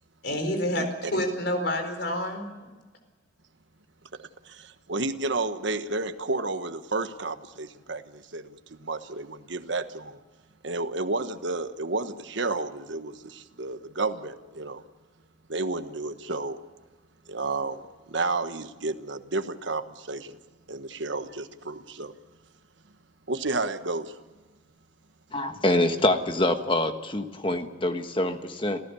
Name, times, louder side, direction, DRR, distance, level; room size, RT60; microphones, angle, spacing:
voice 1, 0.2-2.7, left 1 dB, 60° left, 4.5 m, -28 dB
voice 2, 4.1-10.2 10.6-14.8 15.5-16.6 17.3-17.8 18.1-20.4 20.7-22.1 23.3-24.2, right 3 dB, 75° right, 1.3 m, -31 dB
voice 3, 25.3-28.8, left 1 dB, 25° left, 1.4 m, -25 dB
27.5 x 15.5 x 7.0 m
head